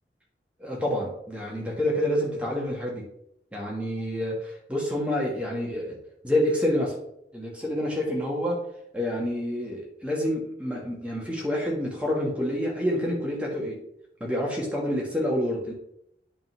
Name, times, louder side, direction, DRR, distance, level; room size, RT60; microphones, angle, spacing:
voice 1, 0.6-3.0 3.5-5.9 6.2-6.9 7.3-8.6 8.9-13.8 14.2-15.7, left 1 dB, 5° right, -2 dB, 1.5 m, -28 dB
8.6 x 3.8 x 4.6 m, 0.76 s
head